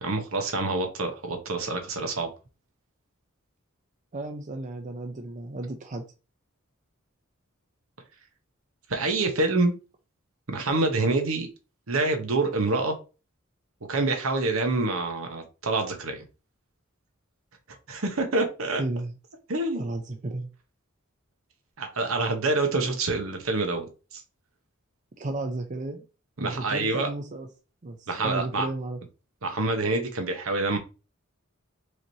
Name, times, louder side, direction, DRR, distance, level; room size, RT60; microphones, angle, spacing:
voice 1, 0.0-2.3 8.9-9.7 10.5-11.5 11.9-13.0 13.9-16.2 17.9-18.8 19.5-19.8 21.8-24.2 26.4-27.1 28.1-28.7 29.4-30.8, right 2 dB, 70° right, 1.1 m, -26 dB
voice 2, 4.1-6.0 18.8-19.2 19.7-20.5 25.2-26.0 26.4-27.5 27.8-29.0, right 2 dB, 35° right, 0.5 m, -33 dB
4.8 x 3.2 x 2.8 m
head